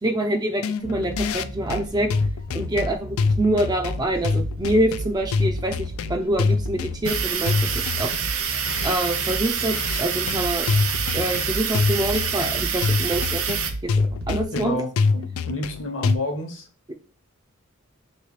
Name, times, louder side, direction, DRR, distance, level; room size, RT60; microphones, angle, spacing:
voice 1, 0.0-2.1 2.5-8.1 8.8-10.7 11.1-13.9 14.3-14.8, right 1 dB, 20° right, 4 dB, 0.4 m, -25 dB
sound 1, 0.6-16.2, left 4 dB, 80° left, 0.3 m, -26 dB
sound 2, 0.8-14.4, right 1 dB, 70° right, 1.4 m, -34 dB
sound 3, 7.0-13.7, right 7 dB, 90° right, 0.7 m, -27 dB
voice 2, 14.5-16.7, left 1 dB, 55° left, 3 dB, 1.0 m, -30 dB
3.2 x 3.2 x 4.7 m, 0.36 s
head